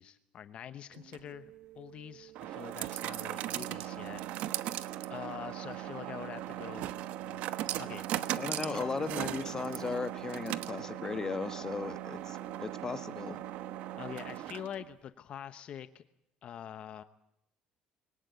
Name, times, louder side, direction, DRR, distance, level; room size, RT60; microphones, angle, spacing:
voice 1, 0.0-4.2 4.5-6.9 7.2-7.4 7.8-8.1 8.7-8.9 14.0-16.0 16.4-17.0, left 9 dB, 50° left, 12 dB, 0.9 m, -45 dB
sound 1, 0.9-14.9, right 13 dB, 75° right, 1.1 m, -38 dB
voice 2, 8.4-13.4, left 4 dB, 25° left, 11 dB, 1.2 m, -37 dB
24.0 x 18.0 x 9.3 m, 0.80 s
cardioid pair, 125°, 2 cm